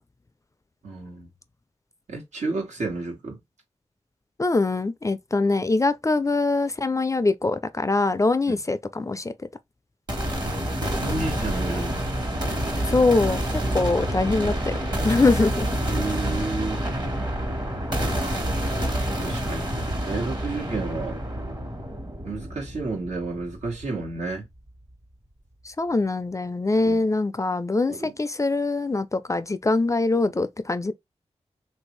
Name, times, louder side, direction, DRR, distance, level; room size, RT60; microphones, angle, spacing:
voice 1, 0.8-1.3 2.1-3.4 8.5-8.6 10.5-10.6 11.0-12.0 13.6-14.0 15.9-16.8 19.2-19.7 20.0-21.2 22.2-24.5 26.8-27.0 27.9-28.1, right 3 dB, 80° right, 1.4 m, -31 dB
voice 2, 4.4-9.3 12.9-13.4 13.7-15.7 25.6-30.9, left 3 dB, 25° left, 0.4 m, -23 dB
sound 1, 10.1-24.0, right 1 dB, 40° right, 1.4 m, -28 dB
3.1 x 2.6 x 3.1 m
cardioid pair, 60°, 12 cm